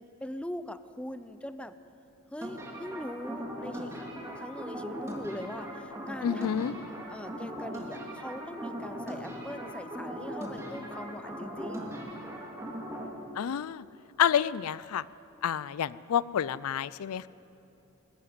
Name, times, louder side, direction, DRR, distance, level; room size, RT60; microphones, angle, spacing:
voice 1, 0.0-1.8 2.3-4.0 4.3-11.9, left 1 dB, 5° left, 12 dB, 0.6 m, -41 dB
sound 1, 2.4-13.1, equal, 15° right, 2.7 m, -39 dB
voice 2, 6.2-6.7 13.4-13.8 14.2-15.0 15.4-17.3, left 9 dB, 75° left, 19 dB, 0.4 m, -29 dB
20.0 x 13.5 x 9.6 m, 2.9 s
head